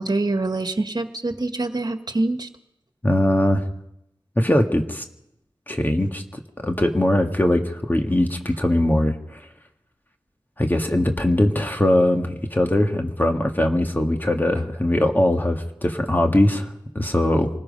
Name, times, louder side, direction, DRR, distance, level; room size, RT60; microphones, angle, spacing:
voice 1, 0.0-2.5, right 2 dB, 50° right, 7 dB, 1.7 m, -25 dB
voice 2, 3.0-3.6 4.4-5.0 5.7-6.2 6.6-9.4 10.6-17.5, left 1 dB, 20° left, 3 dB, 1.8 m, -21 dB
26.5 x 19.5 x 5.4 m, 0.82 s
wide cardioid pair, 70°, 9 cm